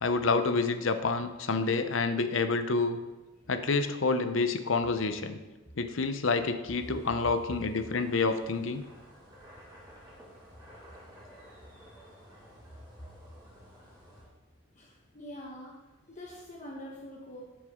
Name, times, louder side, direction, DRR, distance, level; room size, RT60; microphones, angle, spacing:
voice 1, 0.0-3.0 3.5-5.4 5.8-8.8, left 4 dB, 70° left, 9 dB, 0.7 m, -28 dB
sound 1, 6.7-14.2, equal, 20° right, 3.4 m, -54 dB
voice 2, 14.7-15.8 16.1-17.4, left 1 dB, 35° left, -4 dB, 1.3 m, -45 dB
13.0 x 6.3 x 3.7 m, 1.1 s
head